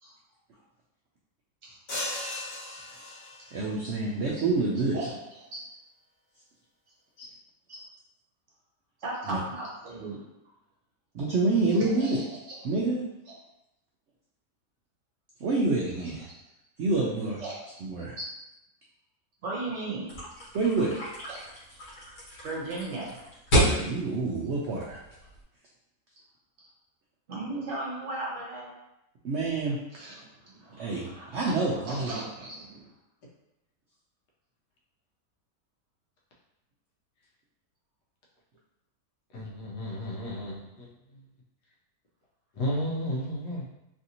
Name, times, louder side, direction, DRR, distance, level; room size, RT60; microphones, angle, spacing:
voice 1, 1.6-2.0 2.3-2.4 2.7-2.8 4.3-4.4 4.9-5.1 5.5-5.6 7.7-7.8 9.0-10.2 12.0-12.6 17.4-17.6 18.2-18.3 19.4-20.1 21.3-21.5 22.4-23.2 27.3-28.7 29.9-31.5 31.9-32.9, right 2 dB, 55° right, -5 dB, 1.0 m, -37 dB
sound 1, 1.9-3.7, left 1 dB, 45° left, 0.9 m, -36 dB
voice 2, 3.5-5.1 9.2-9.4 11.1-12.2 12.6-13.0 15.4-16.2 16.8-17.4 17.8-18.2 20.5-20.9 23.6-25.0 29.2-29.8 30.8-32.2, right 3 dB, 80° right, -3 dB, 0.6 m, -27 dB
sound 2, 20.1-25.4, equal, 65° left, 1.7 m, -30 dB
voice 3, 39.3-40.9 42.6-43.6, equal, 85° left, -4 dB, 1.4 m, -33 dB
3.3 x 2.6 x 2.7 m, 0.90 s
omnidirectional pair, 1.7 m